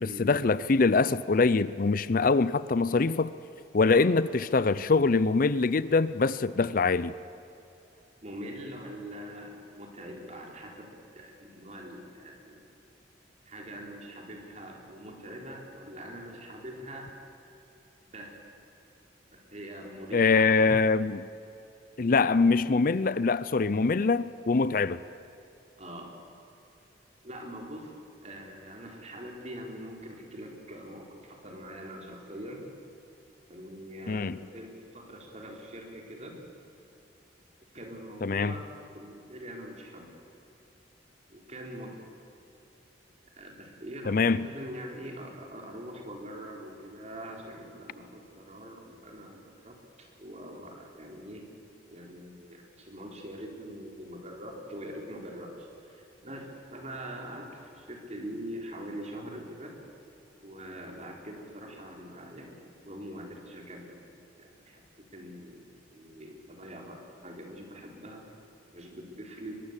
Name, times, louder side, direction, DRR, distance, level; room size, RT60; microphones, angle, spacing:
voice 1, 0.0-3.3 3.7-7.1 20.1-21.2 22.0-25.0 34.1-34.4 38.2-38.5 44.1-44.5, left 4 dB, 50° left, 16 dB, 0.5 m, -24 dB
voice 2, 8.2-12.6 13.4-17.1 18.0-18.4 19.3-20.9 25.8-26.1 27.2-27.9 28.2-32.6 33.5-36.4 37.7-38.7 38.9-40.1 41.3-41.9 43.4-51.4 51.9-59.7 60.4-62.6 62.9-64.0 64.4-68.2 68.7-69.6, equal, 35° right, 1 dB, 4.1 m, -43 dB
23.5 x 21.5 x 8.3 m, 2.8 s
head